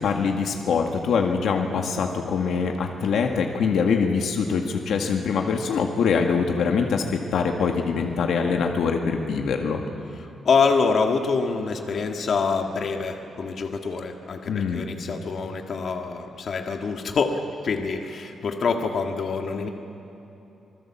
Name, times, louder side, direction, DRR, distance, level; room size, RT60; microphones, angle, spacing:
voice 1, 0.0-9.8 14.5-14.9, left 5 dB, 75° left, 2 dB, 1.8 m, -24 dB
voice 2, 10.5-19.7, left 5 dB, 50° left, 3 dB, 1.7 m, -25 dB
27.0 x 20.5 x 7.4 m, 3.0 s
cardioid pair, 130°, 0 cm